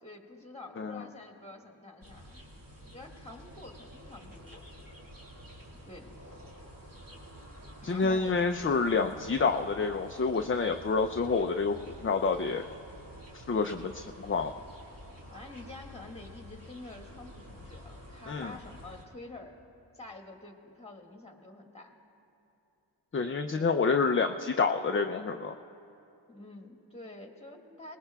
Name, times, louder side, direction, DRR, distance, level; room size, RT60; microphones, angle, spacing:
voice 1, 0.0-2.4 2.8-4.6 5.8-6.1 7.9-8.4 15.3-19.5 19.9-22.0 23.5-23.8 26.3-28.0, left 2 dB, 15° left, 1 dB, 1.7 m, -48 dB
sound 1, 2.0-19.0, equal, 50° right, 2.2 m, -49 dB
voice 2, 7.8-12.6 13.3-14.5 18.3-18.5 23.1-25.6, left 4 dB, 30° left, 5 dB, 0.4 m, -28 dB
24.5 x 19.5 x 2.3 m, 2.8 s
wide cardioid pair, 55°, 44 cm